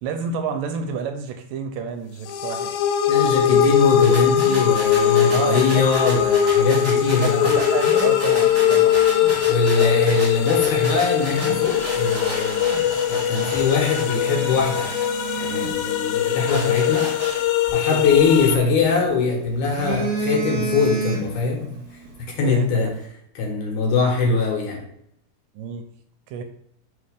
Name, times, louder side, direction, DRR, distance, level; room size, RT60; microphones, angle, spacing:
voice 1, 0.0-2.7 3.5-3.6 5.3-5.9 7.0-8.9 9.8-10.1 13.3-13.6 17.9-18.0 22.4-22.9 23.8-23.9 25.6-25.8 26.3-26.4, right 6 dB, 80° right, 6 dB, 2.1 m, -30 dB
sound 1, 2.3-18.6, left 10 dB, 90° left, 2.4 m, -21 dB
voice 2, 3.1-7.5 9.5-12.6 13.1-14.9 15.4-17.1 17.7-22.9 23.4-24.8, left 4 dB, 65° left, 0 dB, 2.4 m, -22 dB
Telephone, 3.7-6.3 7.5-9.4 10.1-10.2 10.8-10.9 11.2-13.3 13.5-13.7 14.2-16.6 18.1-19.1 19.5-21.6 21.9-22.1, right 4 dB, 50° right, 2.0 m, -32 dB
sound 2, 4.0-15.7 16.1-17.7, right 1 dB, 20° right, 2.0 m, -34 dB
4.7 x 4.1 x 5.1 m, 0.74 s
omnidirectional pair, 4.1 m